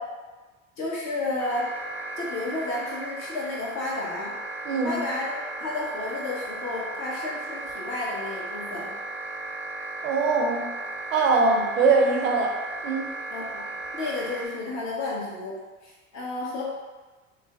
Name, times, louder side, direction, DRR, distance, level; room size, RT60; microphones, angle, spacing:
voice 1, 0.8-1.7 2.2-4.3 4.8-8.9 11.3-11.7 13.3-13.7 13.9-15.6 15.8-16.7, left 2 dB, 45° left, -4 dB, 1.0 m, -32 dB
sound 1, 1.4-14.5, right 2 dB, 5° left, 0.4 m, -36 dB
voice 2, 4.7-5.0 10.0-10.6 11.1-12.5 12.8-13.0, right 4 dB, 75° right, 1 dB, 0.6 m, -22 dB
3.1 x 2.0 x 2.4 m, 1.2 s
figure-of-eight pair, 65°, 38 cm